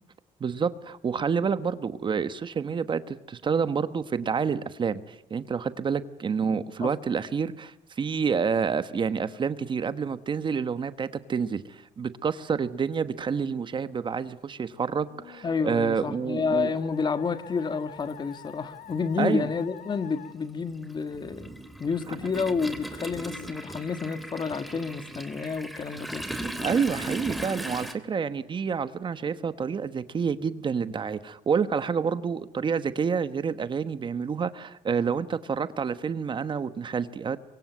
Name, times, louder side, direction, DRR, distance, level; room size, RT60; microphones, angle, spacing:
voice 1, 0.4-16.7 19.2-19.5 26.6-37.4, right 6 dB, 35° right, 1.2 m, -28 dB
Musical instrument, 15.1-20.3, left 10 dB, 75° left, 2.4 m, -47 dB
voice 2, 15.4-21.5 21.8-26.3, left 5 dB, 30° left, 1.7 m, -29 dB
Toilet flush, 17.4-17.5 18.8-19.0 19.3-27.9, right 1 dB, ahead, 3.0 m, -37 dB
25.0 x 24.0 x 9.3 m
cardioid pair, 130°, 14 cm